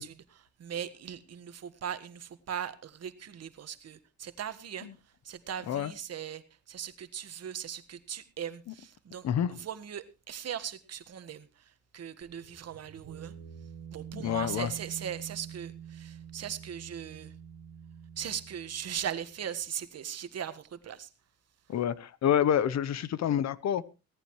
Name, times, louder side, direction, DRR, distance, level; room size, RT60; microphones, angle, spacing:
voice 1, 0.0-4.9 5.2-13.3 13.9-17.3 18.2-21.1, right 9 dB, 55° right, 11 dB, 1.5 m, -39 dB
sound 1, 12.2-19.6, right 9 dB, 85° right, 1.7 m, -46 dB
voice 2, 14.1-14.7 21.7-23.9, left 9 dB, 60° left, 19 dB, 0.9 m, -28 dB
18.0 x 14.5 x 3.1 m, 0.29 s
cardioid pair, 90°, 30 cm